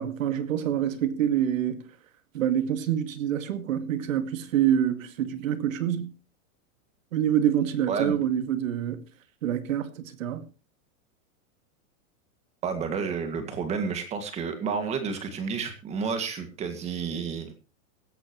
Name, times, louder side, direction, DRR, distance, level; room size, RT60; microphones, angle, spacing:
voice 1, 0.0-1.9 2.3-6.1 7.1-9.0 9.4-10.4, right 10 dB, 65° right, 2.2 m, -26 dB
voice 2, 7.9-8.2 12.6-17.5, right 5 dB, 15° right, 2.0 m, -30 dB
17.0 x 14.0 x 3.1 m
supercardioid pair, 175°, 42 cm